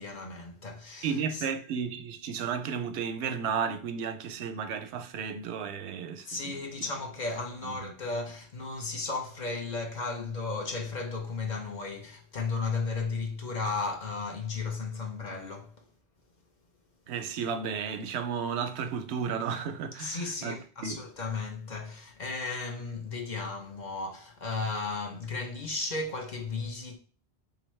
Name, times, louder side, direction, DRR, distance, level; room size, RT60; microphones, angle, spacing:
voice 1, 0.0-1.5 6.2-15.8 20.0-27.0, left 3 dB, 50° left, 0.7 m, -35 dB
voice 2, 1.0-6.5 7.6-7.9 17.1-21.0, right 6 dB, 85° right, 0.8 m, -33 dB
3.6 x 2.9 x 3.1 m
omnidirectional pair, 1.1 m